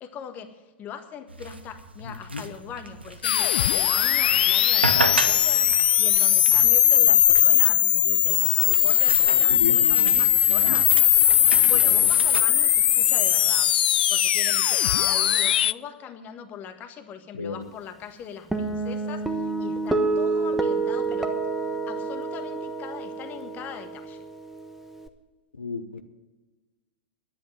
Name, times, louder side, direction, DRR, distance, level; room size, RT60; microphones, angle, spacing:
voice 1, 0.0-5.7 6.0-10.9 11.6-13.8 14.1-21.3 21.6-24.2, left 8 dB, 30° left, 7 dB, 1.6 m, -40 dB
sound 1, 1.3-12.4, right 2 dB, 85° right, 1.2 m, -34 dB
voice 2, 2.0-2.4 9.5-10.2 10.6-10.8 11.9-12.0 17.3-17.6 25.6-26.0, left 4 dB, 80° left, 7 dB, 0.9 m, -32 dB
sound 2, 3.2-15.7, left 11 dB, 60° left, 0.3 m, -19 dB
Guitar, 18.5-25.1, right 3 dB, 5° right, 1.2 m, -28 dB
11.0 x 10.5 x 8.9 m, 1.2 s
figure-of-eight pair, 100°, 6 cm